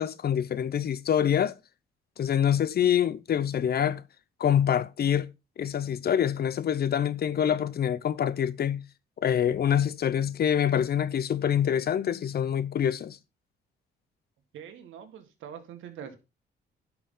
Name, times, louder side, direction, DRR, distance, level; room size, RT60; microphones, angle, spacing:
voice 1, 0.0-1.6 2.2-4.0 4.4-5.3 5.6-8.8 9.2-13.2, left 9 dB, 50° left, 0.8 m, -25 dB
voice 2, 14.5-16.2, right 8 dB, 85° right, 1.9 m, -43 dB
11.0 x 5.9 x 3.9 m
cardioid pair, 90°, 20 cm